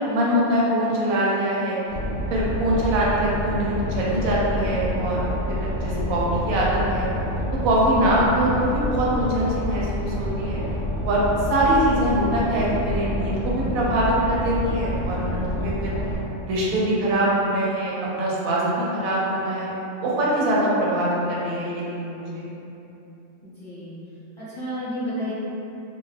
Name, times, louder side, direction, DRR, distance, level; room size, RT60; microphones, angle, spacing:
voice 1, 0.0-1.8 2.3-7.1 7.6-10.6 11.0-11.2 11.5-15.9 16.4-19.8 20.0-22.5, right 1 dB, 85° right, -5 dB, 1.0 m, -23 dB
Boat Water vehicle, 1.9-16.2, left 1 dB, 75° left, 0.5 m, -28 dB
voice 2, 5.6-5.9 23.4-23.9 24.4-25.3, equal, 25° left, -14 dB, 0.7 m, -32 dB
2.4 x 2.3 x 3.2 m, 2.9 s
omnidirectional pair, 1.5 m